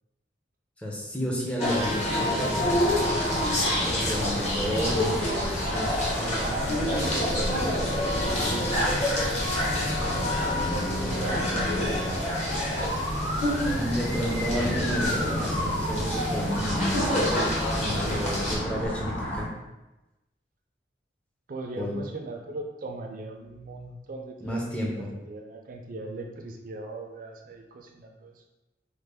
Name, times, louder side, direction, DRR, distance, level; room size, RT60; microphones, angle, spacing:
voice 1, 0.8-2.0 3.5-5.1 13.7-19.5 21.8-22.0 24.4-25.1, equal, 5° left, -2 dB, 0.5 m, -31 dB
sound 1, 1.6-18.6, left 1 dB, 40° left, 0.9 m, -28 dB
sound 2, 2.6-19.4, left 1 dB, 75° left, 0.8 m, -31 dB
voice 2, 2.8-3.3 6.4-9.0 10.1-12.4 21.5-28.4, right 2 dB, 50° right, 3 dB, 0.4 m, -40 dB
3.2 x 2.1 x 3.4 m, 1.0 s
head